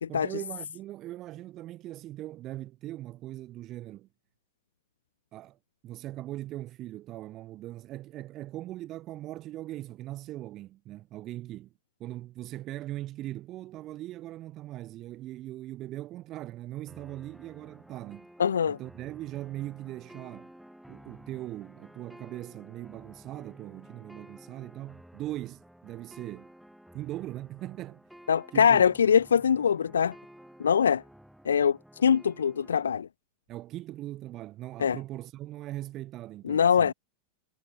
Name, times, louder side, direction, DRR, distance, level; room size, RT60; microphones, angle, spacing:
voice 1, 0.1-4.1 5.3-5.6 5.8-11.7 12.0-18.3 18.7-20.5 20.9-26.5 26.9-28.0 28.5-28.9 33.5-36.9, right 15 dB, 35° right, 3.6 m, -40 dB
sound 1, 16.9-32.9, equal, ahead, 7.7 m, -53 dB
voice 2, 18.4-18.8 28.3-30.1 30.6-31.0 31.4-33.1 34.8-35.0 36.4-36.9, left 7 dB, 70° left, 0.9 m, -23 dB
figure-of-eight pair, 90°, 0 cm